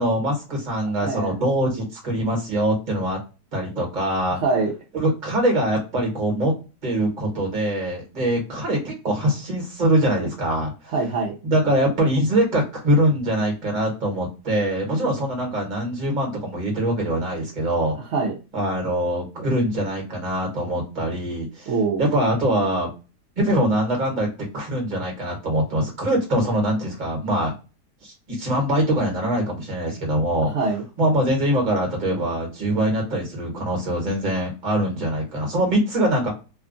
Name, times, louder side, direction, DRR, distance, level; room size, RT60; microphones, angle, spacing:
voice 1, 0.0-3.2 3.5-4.4 4.9-6.5 6.8-10.9 11.4-17.9 18.5-21.7 22.0-22.9 23.4-24.3 24.5-27.5 28.0-30.5 31.0-36.3, right 1 dB, 30° right, 0 dB, 1.1 m, -23 dB
voice 2, 1.0-1.4 4.4-4.7 10.9-11.4 18.1-18.4 21.7-22.0 30.5-30.8, right 4 dB, 65° right, -1 dB, 0.7 m, -23 dB
2.8 x 2.3 x 2.4 m, 0.30 s
omnidirectional pair, 1.8 m